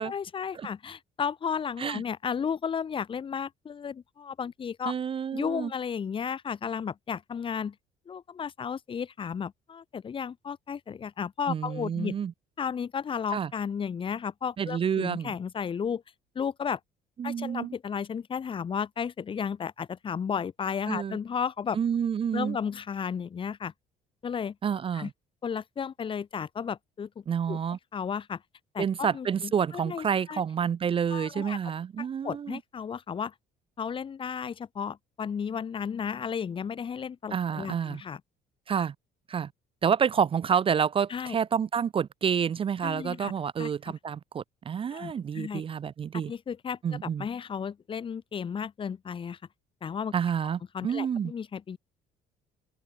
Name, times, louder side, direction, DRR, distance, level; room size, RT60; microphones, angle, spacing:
voice 1, 0.0-4.9 5.3-7.8 8.1-12.2 12.6-16.0 16.3-16.8 17.2-21.8 22.3-23.7 24.2-24.6 24.9-25.1 25.4-27.1 27.5-27.6 27.9-28.4 28.7-30.4 31.1-31.6 32.0-33.3 33.8-38.2 41.1-41.4 42.8-43.3 43.6-43.7 44.9-45.6 46.3-49.4 49.8-50.1 50.7-51.8, left 7 dB, 30° left, 0.7 m, -33 dB
voice 2, 4.9-5.7 11.5-12.3 13.3-13.5 14.6-15.3 17.2-17.7 20.9-21.2 21.7-22.6 24.6-25.1 27.3-27.8 28.8-32.6 37.3-38.0 38.7-38.9 39.3-39.5 39.8-46.3 46.8-47.3 50.1-51.3, right 7 dB, 30° right, 0.5 m, -29 dB
cardioid pair, 110°, 17 cm